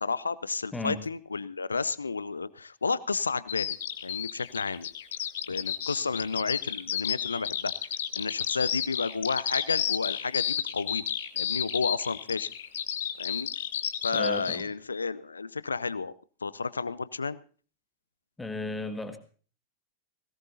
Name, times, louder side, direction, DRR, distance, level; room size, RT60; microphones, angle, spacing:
voice 1, 0.0-3.7 4.0-4.9 5.5-7.7 8.2-11.0 11.4-12.5 13.2-13.5 14.0-16.1 16.4-17.4, left 4 dB, 75° left, 19 dB, 0.6 m, -31 dB
voice 2, 0.7-1.0 14.1-14.7 18.4-19.2, left 2 dB, 10° left, 8 dB, 1.7 m, -34 dB
Bird vocalization bird call bird song, 3.5-14.6, left 10 dB, 60° left, 1.3 m, -31 dB
20.5 x 18.0 x 2.8 m, 0.40 s
figure-of-eight pair, 90°, 0 cm